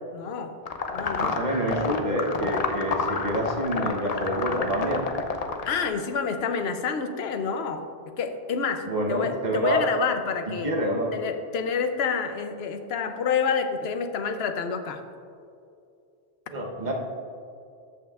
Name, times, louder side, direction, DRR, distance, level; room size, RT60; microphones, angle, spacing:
voice 1, 0.1-0.5 0.9-1.4 5.7-7.8 8.2-10.7 11.1-15.0, left 6 dB, 80° left, 8 dB, 0.9 m, -28 dB
sound 1, 0.7-5.9, left 4 dB, 45° left, 0.6 m, -29 dB
voice 2, 1.2-5.0 8.9-9.8 10.6-11.1 16.5-16.9, equal, 45° right, 0 dB, 1.1 m, -27 dB
13.5 x 5.6 x 2.4 m, 2.4 s
omnidirectional pair, 1.1 m